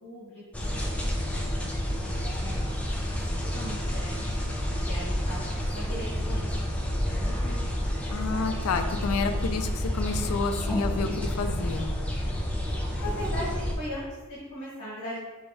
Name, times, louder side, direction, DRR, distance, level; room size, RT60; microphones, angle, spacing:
voice 1, 0.0-0.7 1.2-4.4 4.8-6.5 6.7-8.6 13.0-15.2, equal, 50° left, -9 dB, 1.3 m, -40 dB
Blackbird singing, 0.5-13.7, equal, 5° left, 0.4 m, -29 dB
voice 2, 8.1-11.9, left 4 dB, 85° left, 7 dB, 0.4 m, -30 dB
3.6 x 3.1 x 4.7 m, 1.2 s
head